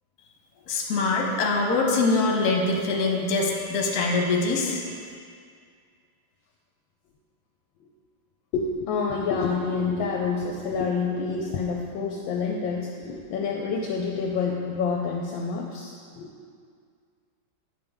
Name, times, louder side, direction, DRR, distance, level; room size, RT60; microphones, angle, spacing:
voice 1, 0.7-5.1, left 3 dB, 60° left, 0 dB, 1.3 m, -24 dB
voice 2, 8.5-16.3, left 5 dB, 75° left, 0 dB, 1.3 m, -28 dB
9.3 x 5.3 x 3.5 m, 2.1 s
omnidirectional pair, 2.2 m